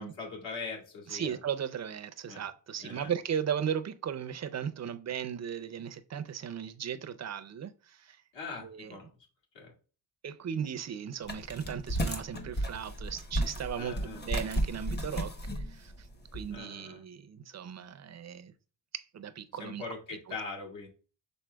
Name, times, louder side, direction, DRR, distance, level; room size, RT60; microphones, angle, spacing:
voice 1, 0.0-1.4 2.3-2.5 2.8-3.1 8.3-9.1 9.5-9.7 13.8-14.3 16.5-17.0 19.6-20.9, left 4 dB, 65° left, 2.0 m, -41 dB
voice 2, 1.1-8.2 8.6-9.0 10.2-16.1 16.3-18.5 18.9-19.8 20.1-20.4, right 8 dB, 35° right, 0.4 m, -37 dB
sound 1, 11.2-16.5, right 1 dB, 20° left, 0.8 m, -34 dB
6.2 x 3.9 x 2.2 m
cardioid pair, 130°, 48 cm